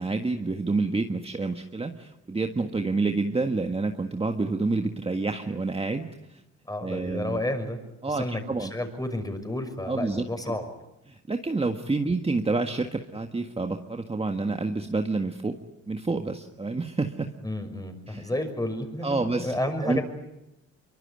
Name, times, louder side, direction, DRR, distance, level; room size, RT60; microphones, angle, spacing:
voice 1, 0.0-6.4 6.8-7.4 8.0-8.7 9.8-10.6 11.1-15.6 15.9-17.3 18.1-18.3 19.0-20.0, right 3 dB, 20° right, 5 dB, 1.7 m, -28 dB
voice 2, 6.6-7.8 8.1-10.7 17.4-20.0, left 1 dB, 10° left, 7 dB, 6.0 m, -31 dB
24.5 x 24.0 x 9.7 m, 0.91 s
cardioid pair, 90°, 30 cm